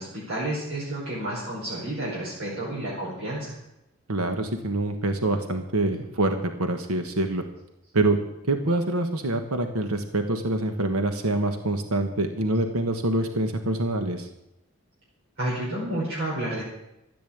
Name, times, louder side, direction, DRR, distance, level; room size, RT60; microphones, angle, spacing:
voice 1, 0.0-3.5 15.4-16.6, right 1 dB, 60° right, -7 dB, 5.0 m, -30 dB
voice 2, 4.1-7.4 7.9-8.2 8.4-14.3, right 2 dB, 80° right, 6 dB, 1.4 m, -25 dB
14.5 x 8.6 x 8.7 m, 0.88 s
head